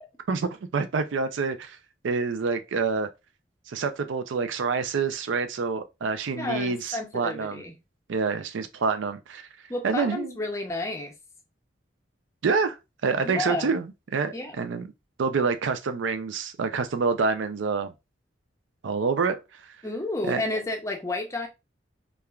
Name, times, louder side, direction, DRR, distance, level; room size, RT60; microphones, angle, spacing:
voice 1, 0.3-1.8 2.0-3.1 3.7-7.6 8.1-9.5 9.8-10.4 12.4-12.8 13.0-14.9 15.2-17.9 18.8-19.4 20.3-20.4, right 4 dB, 80° right, 0.4 m, -27 dB
voice 2, 6.3-7.7 9.7-11.1 13.2-13.7 14.3-14.6 19.8-21.5, left 2 dB, 15° left, 0.5 m, -31 dB
3.1 x 2.4 x 2.3 m
head